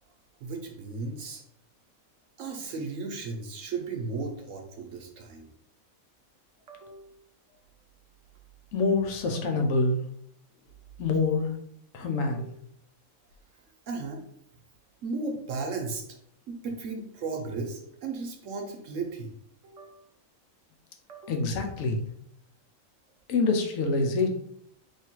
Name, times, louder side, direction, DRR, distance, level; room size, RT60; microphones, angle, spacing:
voice 1, 0.4-1.4 2.4-5.5 6.7-7.1 9.3-9.4 12.1-12.5 13.9-14.2 15.0-16.0 16.5-19.3 19.6-20.0 21.1-21.4, right 4 dB, 65° right, 3 dB, 1.0 m, -35 dB
voice 2, 8.7-10.0 11.0-11.5 11.9-12.5 21.3-22.0 23.3-24.3, left 3 dB, 75° left, 4 dB, 1.1 m, -26 dB
3.2 x 2.7 x 4.5 m, 0.70 s
omnidirectional pair, 1.5 m